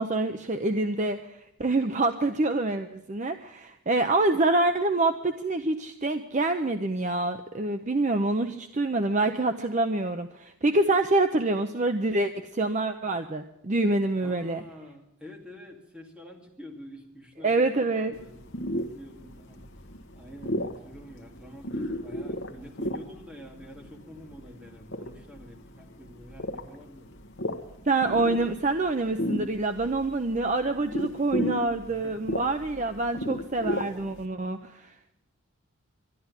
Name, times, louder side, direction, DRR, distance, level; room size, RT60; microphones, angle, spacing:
voice 1, 0.0-14.6 17.4-18.1 27.9-34.9, right 2 dB, 35° right, 8 dB, 0.6 m, -26 dB
voice 2, 14.2-18.4 18.8-19.7 20.2-27.1 31.9-32.2, equal, 5° right, -1 dB, 2.3 m, -47 dB
sound 1, 18.1-34.3, equal, 55° left, 1.2 m, -35 dB
12.0 x 11.5 x 9.6 m, 0.82 s
head